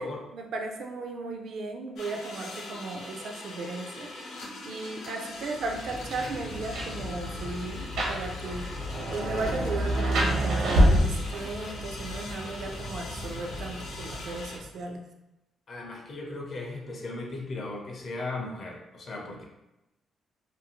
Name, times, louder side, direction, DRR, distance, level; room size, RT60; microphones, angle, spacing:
voice 1, 0.0-8.8 9.1-15.0, right 3 dB, 55° right, 3 dB, 0.3 m, -36 dB
sound 1, 2.0-14.6, left 2 dB, 90° left, 0.6 m, -42 dB
Rain, 5.6-14.6, equal, 80° right, 0.7 m, -29 dB
voice 2, 15.7-19.4, left 2 dB, 35° left, 0 dB, 0.5 m, -37 dB
2.6 x 2.4 x 2.8 m, 0.94 s
cardioid pair, 175°, 0 cm